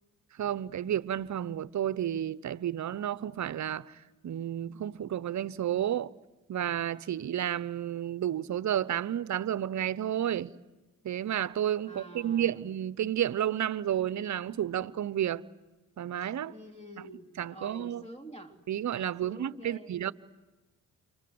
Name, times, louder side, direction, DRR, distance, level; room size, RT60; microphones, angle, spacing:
voice 1, 0.4-3.9 4.2-6.1 6.5-10.5 11.0-15.4 16.0-16.5 17.4-18.0 18.7-20.1, right 10 dB, 50° right, 0.9 m, -31 dB
voice 2, 11.8-12.6 16.2-18.5 19.2-20.0, right 1 dB, 20° left, 3.2 m, -48 dB
29.0 x 25.5 x 7.9 m
supercardioid pair, 70°, 36 cm